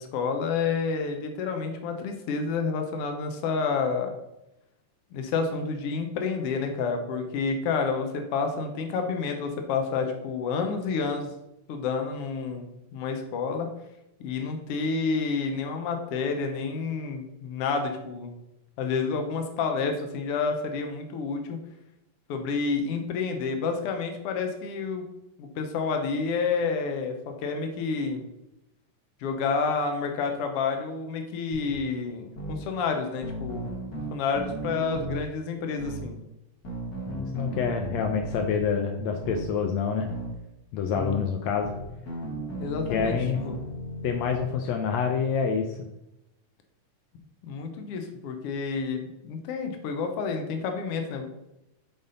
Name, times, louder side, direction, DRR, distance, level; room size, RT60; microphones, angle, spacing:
voice 1, 0.0-4.1 5.1-11.3 11.7-12.7 12.9-13.7 14.2-18.3 18.8-21.6 22.3-25.1 25.4-27.1 27.4-28.2 29.2-33.7 34.1-36.2 42.6-43.2 43.4-43.5 47.4-51.3, left 5 dB, 70° left, 5 dB, 1.4 m, -29 dB
sound 1, 31.5-31.8 32.4-32.6 33.2-35.2 35.8-36.0 36.6-38.6 39.2-39.5 40.1-40.3 40.9-41.2 41.6-44.4, right 1 dB, 50° left, 1.1 m, -35 dB
voice 2, 37.1-40.1 40.7-41.7 42.9-43.4 44.0-45.7, left 6 dB, 90° left, 3 dB, 1.5 m, -27 dB
9.2 x 4.0 x 3.9 m, 0.88 s
omnidirectional pair, 3.8 m